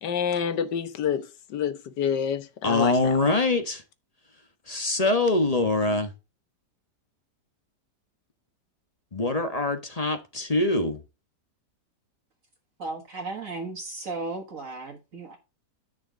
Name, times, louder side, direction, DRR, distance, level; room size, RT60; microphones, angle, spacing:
voice 1, 0.0-3.1, left 7 dB, 85° left, 1.6 m, -28 dB
voice 2, 2.6-3.8 4.7-6.1 9.1-11.0, left 2 dB, 25° left, 1.3 m, -24 dB
voice 3, 12.8-15.4, right 3 dB, 50° right, 1.8 m, -35 dB
9.8 x 6.2 x 3.8 m
omnidirectional pair, 1.8 m